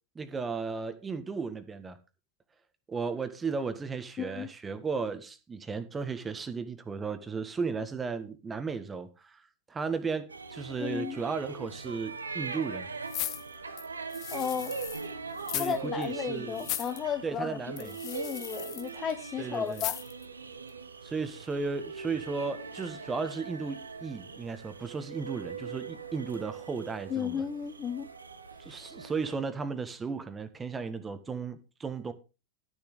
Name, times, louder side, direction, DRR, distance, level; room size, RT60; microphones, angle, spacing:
voice 1, 0.1-2.0 2.9-9.4 9.7-12.9 15.5-16.7 17.2-17.9 19.4-19.8 21.0-27.4 28.6-32.1, right 5 dB, 20° right, 1.5 m, -35 dB
voice 2, 4.2-4.5 10.8-11.2 14.3-14.8 15.6-20.0 27.1-28.1, left 7 dB, 25° left, 0.8 m, -34 dB
sound 1, 10.3-29.3, right 4 dB, 85° right, 1.1 m, -41 dB
sound 2, 13.1-15.1 15.4-15.8 16.0-16.1 16.6-17.0 17.8-18.9 19.7-20.2 20.7-20.8, left 13 dB, 45° left, 1.2 m, -37 dB
12.0 x 7.1 x 5.0 m
figure-of-eight pair, 95°, 0 cm